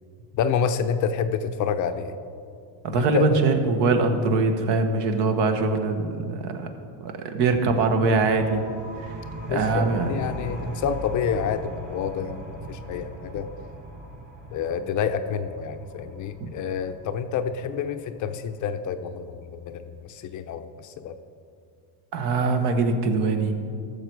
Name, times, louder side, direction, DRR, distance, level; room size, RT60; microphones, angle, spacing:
voice 1, 0.3-2.2 3.0-3.3 9.5-13.5 14.5-21.2, left 7 dB, 40° left, 9 dB, 0.6 m, -28 dB
voice 2, 2.8-6.7 7.0-8.6 9.0-9.2 9.5-10.2 16.4-16.5 22.1-23.5, right 3 dB, 60° right, 7 dB, 1.2 m, -23 dB
sound 1, 7.8-19.2, right 1 dB, 40° right, 3.0 m, -40 dB
14.5 x 6.8 x 4.6 m, 2.4 s
supercardioid pair, 125°, 47 cm